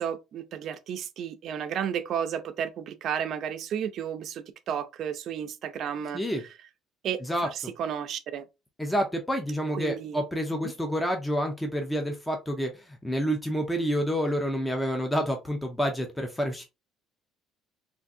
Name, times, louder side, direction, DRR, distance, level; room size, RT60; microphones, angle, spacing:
voice 1, 0.0-6.2 7.0-7.2 7.8-8.5 9.7-10.2 10.6-10.7, right 8 dB, 50° right, 0.5 m, -32 dB
voice 2, 7.2-7.7 8.8-16.6, equal, 5° left, 0.5 m, -28 dB
3.6 x 2.5 x 2.6 m
cardioid pair, 155°, 0 cm